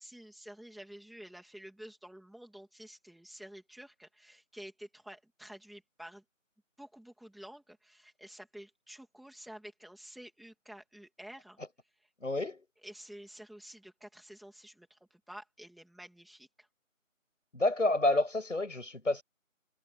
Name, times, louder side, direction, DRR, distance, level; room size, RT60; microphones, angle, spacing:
voice 1, 0.0-6.2 6.8-11.6 12.8-16.7, right 1 dB, ahead, 2.3 m, -50 dB
voice 2, 12.2-12.6 17.5-19.2, left 2 dB, 65° left, 6.3 m, -29 dB
figure-of-eight pair, 170°, 40 cm